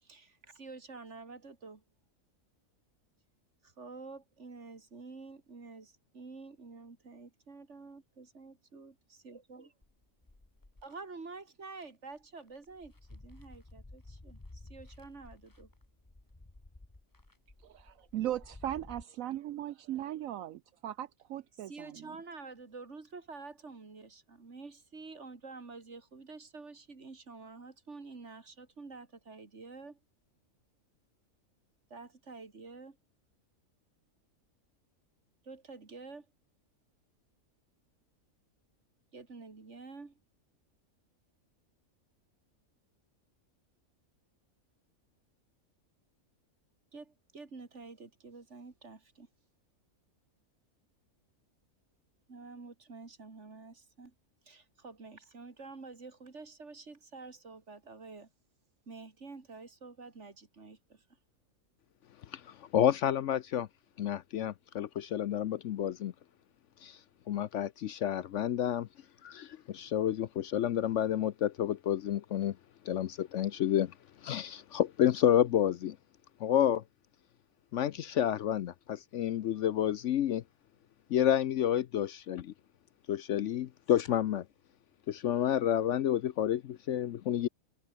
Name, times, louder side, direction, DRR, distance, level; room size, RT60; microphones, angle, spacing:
voice 1, 0.0-1.8 3.6-8.9 9.2-9.7 10.8-15.7 21.5-30.0 31.9-33.0 35.4-36.3 39.1-40.2 46.9-49.3 52.3-54.1 54.5-58.3 58.9-61.0, right 4 dB, 55° right, 2.8 m, -49 dB
sound 1, 9.8-11.0 11.7-11.8 12.2-19.0, left 2 dB, 15° left, 1.4 m, -54 dB
voice 2, 17.7-22.0, right 12 dB, 75° right, 1.0 m, -38 dB
voice 3, 62.3-63.7 64.0-66.1 66.8-67.0 67.3-68.9 69.2-72.6 72.9-73.9 74.2-76.0 76.4-76.8 77.7-80.4 81.1-82.5 83.1-84.4 85.1-87.5, left 10 dB, 65° left, 0.9 m, -30 dB
omnidirectional pair, 1.5 m